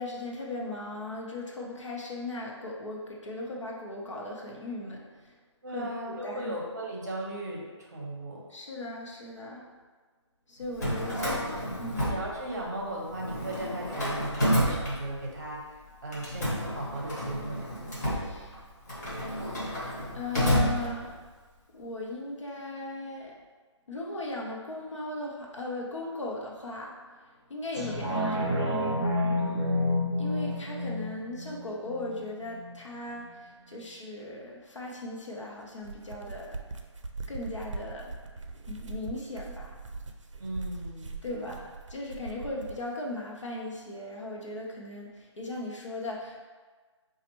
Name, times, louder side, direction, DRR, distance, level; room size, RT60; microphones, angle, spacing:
voice 1, 0.0-5.4 5.7-6.5 8.5-9.7 10.5-11.4 11.8-12.1 18.1-18.6 19.8-19.9 20.1-21.2 21.7-23.4 23.9-28.8 30.2-36.6 37.3-38.1 38.7-39.8 41.2-46.4, left 2 dB, 75° left, -2 dB, 0.9 m, -38 dB
voice 2, 5.6-8.4 11.1-11.4 12.1-15.7 16.0-17.7 29.4-29.9 40.4-41.6, right 1 dB, 35° right, -2 dB, 0.8 m, -37 dB
Drawer open or close, 10.6-12.8 13.1-15.5 16.1-21.4, equal, 35° left, 0.9 m, -30 dB
sound 1, 27.7-32.8 33.2-33.3, left 1 dB, 10° left, 0.4 m, -29 dB
sound 2, 35.7-42.8, right 3 dB, 85° right, 0.5 m, -41 dB
4.1 x 2.5 x 2.9 m, 1.4 s
hypercardioid pair, 175°, 16 cm